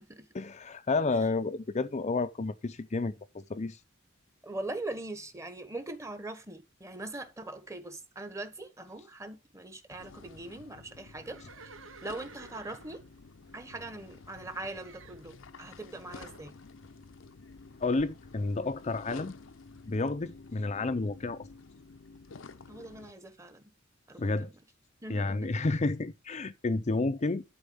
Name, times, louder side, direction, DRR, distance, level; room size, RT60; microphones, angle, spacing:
voice 1, 0.3-3.8 17.8-19.3 19.9-21.4 24.2-24.5 25.1-27.4, left 3 dB, 35° left, 0.5 m, -30 dB
voice 2, 4.4-11.4 12.0-13.0 13.5-16.5 22.7-23.7 24.1-24.5 25.0-25.5 26.7-26.8, right 2 dB, 15° right, 1.3 m, -41 dB
sound 1, 10.0-23.1, left 4 dB, 75° left, 0.7 m, -51 dB
Livestock farm animals working animals, 11.1-14.2 14.6-15.3 16.1-16.4, right 4 dB, 80° right, 1.0 m, -53 dB
11.5 x 4.4 x 7.0 m
head